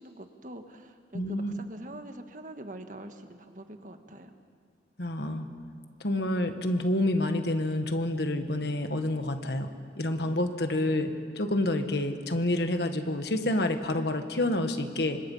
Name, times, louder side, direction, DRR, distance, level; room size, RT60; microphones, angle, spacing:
voice 1, 0.0-4.3, right 1 dB, 45° right, 6 dB, 1.5 m, -44 dB
voice 2, 1.1-1.5 5.0-5.5 6.0-9.7 10.0-15.2, left 1 dB, 65° left, 7 dB, 1.5 m, -28 dB
27.5 x 25.5 x 5.6 m, 2.2 s
head